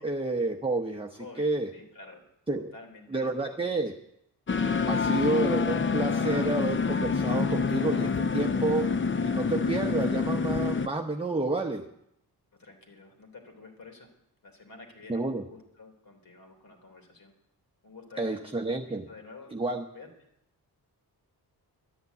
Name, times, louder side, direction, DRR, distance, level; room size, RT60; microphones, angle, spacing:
voice 1, 0.0-1.7 2.5-2.7 3.1-3.9 4.9-11.9 15.1-15.4 18.2-19.1 19.5-19.8, right 2 dB, 15° right, 2 dB, 0.9 m, -30 dB
voice 2, 1.2-2.2 2.5-3.8 12.5-14.1 14.4-17.3 17.8-18.5 18.9-20.1, left 3 dB, 60° left, 4 dB, 3.5 m, -50 dB
sound 1, 4.5-10.9, left 5 dB, 30° left, 0.6 m, -27 dB
12.0 x 10.5 x 8.3 m, 0.80 s
wide cardioid pair, 105°, 39 cm